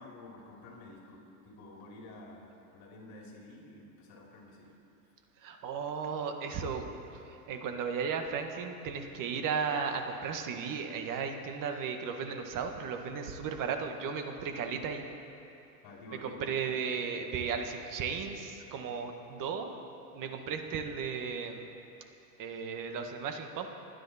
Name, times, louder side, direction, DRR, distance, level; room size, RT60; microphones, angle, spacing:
voice 1, 0.0-4.7 15.8-16.4, left 2 dB, 50° left, -1 dB, 3.2 m, -50 dB
voice 2, 5.4-6.9 7.1-15.0 16.2-19.8 20.1-21.7 22.4-23.7, right 6 dB, 40° right, 5 dB, 1.7 m, -35 dB
29.5 x 9.9 x 4.3 m, 2.7 s
hypercardioid pair, 110°, 47 cm